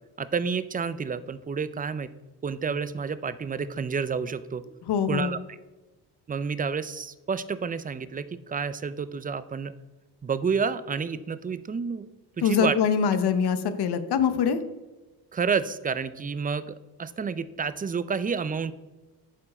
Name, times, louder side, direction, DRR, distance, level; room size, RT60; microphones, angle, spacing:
voice 1, 0.2-2.1 2.4-4.6 5.1-5.6 6.3-9.7 10.2-12.1 12.4-12.7 15.3-18.7, right 5 dB, 20° right, 15 dB, 0.4 m, -29 dB
voice 2, 4.9-5.3 12.4-14.6, left 7 dB, 70° left, 11 dB, 0.9 m, -24 dB
11.0 x 4.5 x 4.3 m, 1.2 s
cardioid pair, 90°, 41 cm